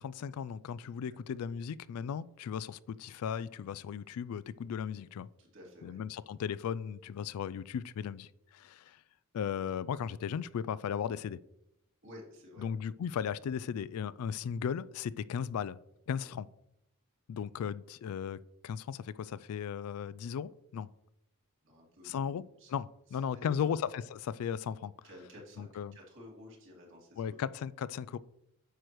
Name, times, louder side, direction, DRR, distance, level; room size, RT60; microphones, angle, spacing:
voice 1, 0.0-5.3 5.8-9.0 9.3-11.4 12.6-15.8 16.1-16.5 17.3-18.4 18.6-20.9 22.0-22.4 22.7-24.9 25.6-26.0 27.2-28.2, left 7 dB, 70° left, 0.3 m, -36 dB
voice 2, 5.4-6.0 12.0-12.7 16.2-16.3 21.6-22.7 23.1-23.8 25.0-27.5, left 1 dB, 60° right, 2.4 m, -52 dB
9.3 x 6.3 x 3.0 m
head